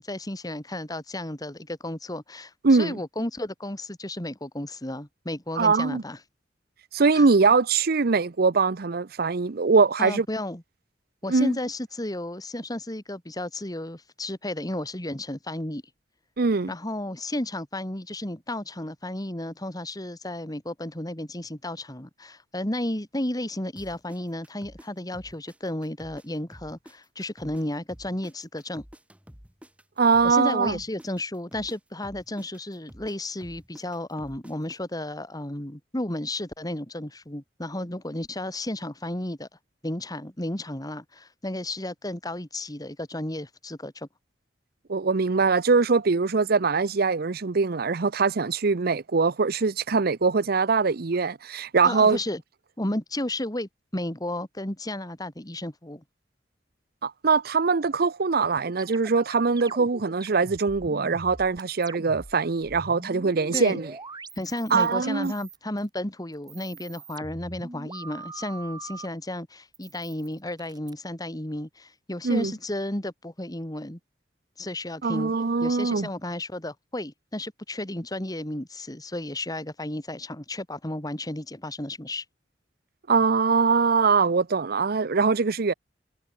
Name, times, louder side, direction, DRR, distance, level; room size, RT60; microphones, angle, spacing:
voice 1, 0.0-6.2 7.1-7.2 10.0-10.6 11.2-15.8 16.7-28.8 30.2-39.5 39.8-44.1 51.8-52.4 52.8-56.0 63.5-63.8 64.4-74.0 74.6-75.3 75.6-82.2, left 1 dB, 20° left, 2.7 m, -33 dB
voice 2, 5.6-6.0 6.9-10.3 11.3-11.5 16.4-16.7 30.0-30.8 44.9-52.2 57.0-63.9 64.7-65.3 72.2-72.5 75.0-76.1 83.1-85.7, right 4 dB, 60° right, 0.7 m, -22 dB
sound 1, 23.8-26.3 26.5-30.4 30.6-34.8, equal, 5° right, 3.0 m, -49 dB
sound 2, 58.4-62.4 62.6-64.9 65.2-65.9 66.3-69.1 69.7-70.9, right 2 dB, 25° right, 5.9 m, -42 dB
head